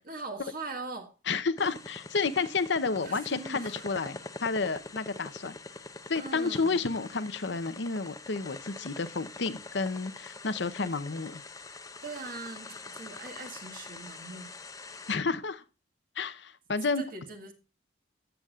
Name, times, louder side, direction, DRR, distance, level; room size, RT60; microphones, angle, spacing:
voice 1, 0.0-1.1 3.0-3.8 6.1-6.8 12.0-14.6 17.0-17.5, right 3 dB, 50° right, 1.8 m, -41 dB
voice 2, 1.3-5.6 6.1-11.4 15.1-15.6 16.2-17.0, left 4 dB, 65° left, 0.8 m, -31 dB
sound 1, 1.6-15.1, left 3 dB, 20° left, 0.7 m, -45 dB
14.0 x 7.2 x 2.4 m
head